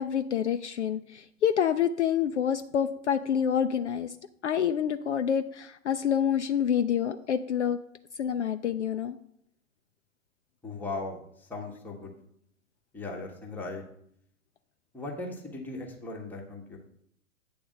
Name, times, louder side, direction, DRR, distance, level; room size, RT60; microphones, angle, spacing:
voice 1, 0.0-4.1 4.4-7.8 8.2-9.2, left 8 dB, 55° left, 8 dB, 0.5 m, -27 dB
voice 2, 10.6-11.2 11.5-12.1 12.9-13.8 14.9-16.8, left 3 dB, 5° left, 0 dB, 0.9 m, -38 dB
8.7 x 3.4 x 6.2 m, 0.70 s
figure-of-eight pair, 110°, 43 cm